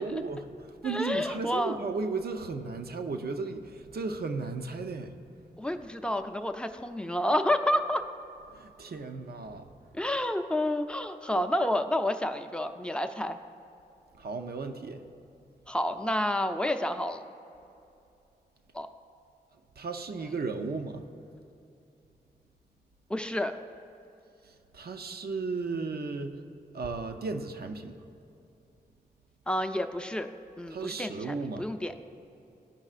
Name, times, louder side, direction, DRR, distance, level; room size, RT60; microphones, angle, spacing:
voice 1, 0.0-5.1 8.5-9.7 14.2-15.0 19.8-21.0 24.4-26.3 26.7-27.9 30.7-31.7, right 4 dB, 65° right, 6 dB, 0.6 m, -35 dB
voice 2, 0.8-1.8 5.6-8.0 9.9-13.4 15.7-17.2 18.7-18.9 20.2-20.3 23.1-23.5 29.5-30.3 30.6-31.9, left 1 dB, 5° left, 7 dB, 0.5 m, -29 dB
13.5 x 5.3 x 2.4 m, 2.7 s
cardioid pair, 40°, 18 cm